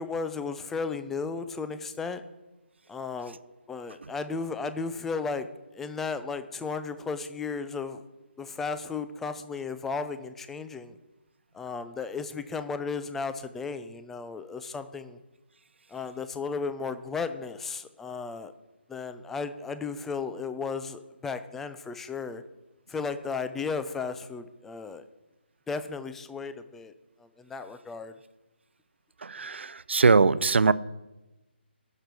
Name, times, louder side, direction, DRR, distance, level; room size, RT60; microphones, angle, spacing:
voice 1, 0.0-2.2 2.9-3.4 3.7-5.5 5.7-8.0 8.4-11.0 11.5-15.2 15.9-18.5 18.9-22.4 22.9-25.0 25.7-26.9 27.2-28.1, left 4 dB, 5° left, 10 dB, 0.3 m, -34 dB
voice 2, 29.2-30.7, right 4 dB, 80° right, 17 dB, 0.5 m, -21 dB
11.5 x 6.9 x 6.0 m, 1.0 s
figure-of-eight pair, 160°, 6 cm